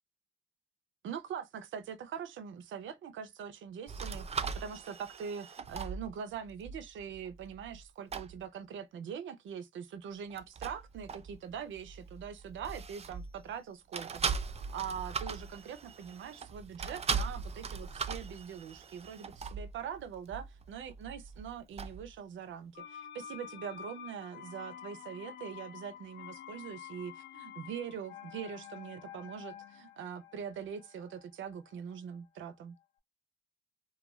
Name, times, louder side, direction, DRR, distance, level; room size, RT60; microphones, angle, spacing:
voice 1, 1.0-4.3 4.5-32.8, right 7 dB, 85° right, 0.5 m, -43 dB
sound 1, 3.9-7.9 8.1-8.4 10.3-13.6 13.9-22.2, right 5 dB, 35° right, 0.4 m, -40 dB
sound 2, 22.7-32.5 32.8-32.9, left 10 dB, 70° left, 0.5 m, -49 dB
2.4 x 2.2 x 3.0 m
cardioid pair, 90°, 19 cm